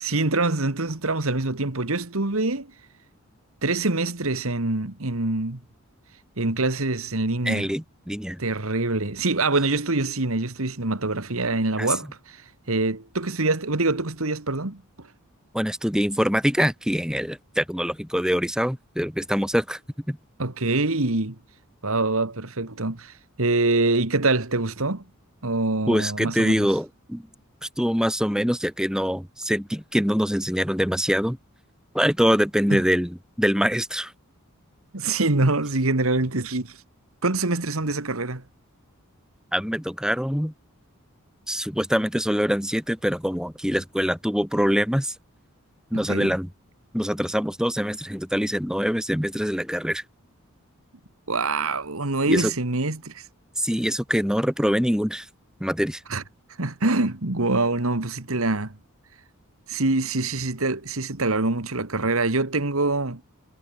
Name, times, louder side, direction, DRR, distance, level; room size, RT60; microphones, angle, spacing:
voice 1, 0.0-2.7 3.6-5.6 6.4-7.7 8.4-15.1 20.4-21.4 21.8-25.0 25.4-26.7 32.7-32.8 34.9-36.8 37.2-38.4 45.9-46.3 51.3-53.2 56.1-56.2 56.6-58.7 59.7-63.2, right 2 dB, 70° right, 2.0 m, -25 dB
voice 2, 7.4-8.4 11.8-11.9 15.5-19.8 20.1-20.2 25.9-27.2 27.8-31.4 31.9-34.1 39.5-40.5 41.5-45.1 45.9-46.5 46.9-50.0 52.3-52.5 53.6-55.3 55.6-56.0, equal, 5° right, 6.5 m, -24 dB
head